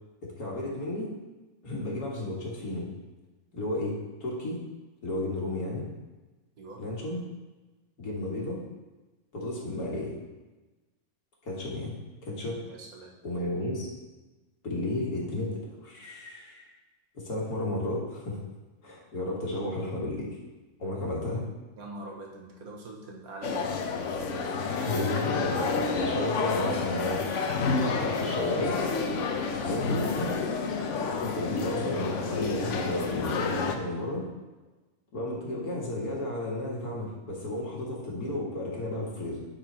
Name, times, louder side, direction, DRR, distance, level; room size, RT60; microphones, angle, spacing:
voice 1, 0.2-1.1 1.6-2.9 3.5-4.6 5.0-5.9 6.8-7.2 8.0-8.6 9.3-10.2 11.4-12.0 12.2-12.6 13.2-13.9 14.6-16.7 17.1-18.4 18.8-20.4 20.8-21.5 24.8-27.2 27.9-28.8 29.6-30.3 31.0-34.3 35.1-39.4, left 1 dB, 75° left, -3 dB, 2.3 m, -33 dB
voice 2, 12.6-13.2 21.3-21.4 21.8-23.7 30.9-31.0 31.3-31.4 31.7-31.9, right 2 dB, 70° right, -1 dB, 1.6 m, -44 dB
sound 1, 23.4-33.7, left 4 dB, 60° left, 0.9 m, -29 dB
10.5 x 4.2 x 4.4 m, 1.2 s
omnidirectional pair, 1.6 m